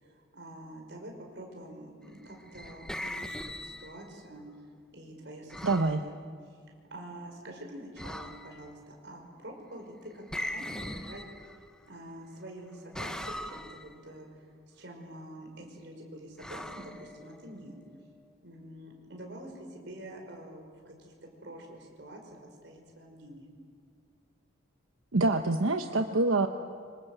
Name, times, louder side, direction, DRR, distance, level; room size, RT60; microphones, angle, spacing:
voice 1, 0.0-4.4 4.9-6.2 6.5-6.6 6.9-11.2 11.9-17.8 18.4-21.1 21.4-23.5, right 1 dB, 55° right, 2 dB, 5.6 m, -46 dB
sound 1, 2.2-4.2 5.5-6.0 8.0-8.7 10.3-11.8 12.9-13.9 16.4-17.6, left 1 dB, 5° left, 0.8 m, -40 dB
voice 2, 5.6-6.0 25.1-26.5, right 2 dB, 85° right, 6 dB, 1.1 m, -25 dB
26.5 x 26.0 x 8.2 m, 2.1 s
head